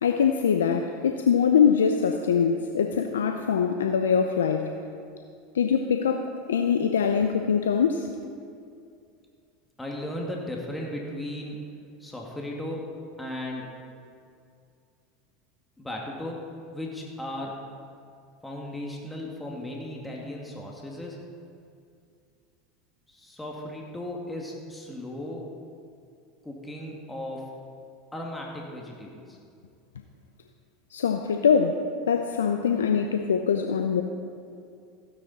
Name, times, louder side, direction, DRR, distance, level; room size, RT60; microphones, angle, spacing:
voice 1, 0.0-4.7 5.5-8.1 30.9-34.0, left 7 dB, 85° left, 6 dB, 0.6 m, -23 dB
voice 2, 9.8-11.6 12.0-12.9 13.2-13.7 15.8-16.4 16.7-17.6 18.4-21.2 23.1-25.5 26.4-27.5 28.1-29.4, left 1 dB, 10° left, -2 dB, 2.1 m, -36 dB
15.5 x 9.8 x 4.2 m, 2.4 s
hypercardioid pair, 85°, 0 cm